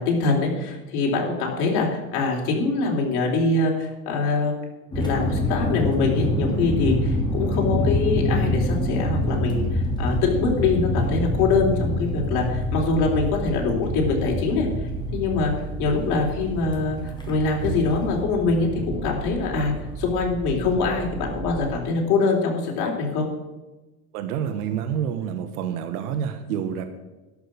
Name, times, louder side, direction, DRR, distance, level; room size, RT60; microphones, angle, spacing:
voice 1, 0.0-4.6 5.0-14.7 15.1-15.5 15.8-23.3, left 4 dB, 55° left, -1 dB, 3.8 m, -24 dB
sound 1, 4.9-18.2, left 1 dB, 10° left, 3.0 m, -26 dB
sound 2, 6.6-21.8, right 4 dB, 10° right, 1.0 m, -35 dB
voice 2, 24.1-26.8, right 8 dB, 80° right, 8 dB, 1.3 m, -28 dB
12.0 x 6.5 x 9.6 m, 1.1 s
supercardioid pair, 110°, 44 cm